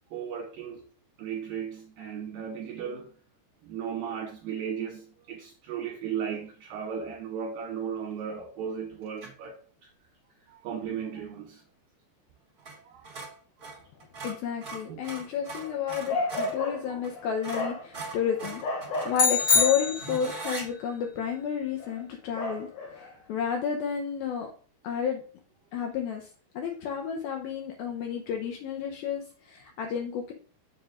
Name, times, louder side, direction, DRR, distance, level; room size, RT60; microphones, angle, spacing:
voice 1, 0.1-0.9 1.2-3.1 3.6-9.9 10.5-11.6 12.8-13.1 13.6-13.8 14.9-15.0, right 7 dB, 70° right, 2.6 m, -36 dB
sound 1, 9.2-9.5 12.6-12.8 13.0-16.6 17.0-17.1 17.4-20.7, right 3 dB, 25° right, 2.6 m, -40 dB
voice 2, 14.2-24.5 24.8-25.2 25.7-26.3 26.5-30.3, left 6 dB, 75° left, 2.5 m, -31 dB
sound 2, 19.1-20.5, left 5 dB, 45° left, 1.5 m, -24 dB
9.6 x 7.0 x 2.5 m
omnidirectional pair, 4.5 m